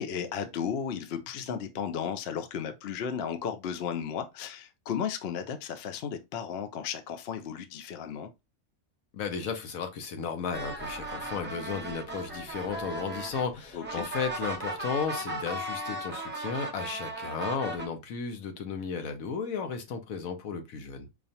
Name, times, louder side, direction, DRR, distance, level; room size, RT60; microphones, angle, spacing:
voice 1, 0.0-8.3 13.7-14.1, left 7 dB, 60° left, 0.7 m, -34 dB
voice 2, 9.1-21.1, left 6 dB, 75° left, 1.2 m, -34 dB
sound 1, 10.5-17.9, right 2 dB, 10° right, 0.7 m, -36 dB
5.0 x 2.4 x 2.7 m
omnidirectional pair, 1.5 m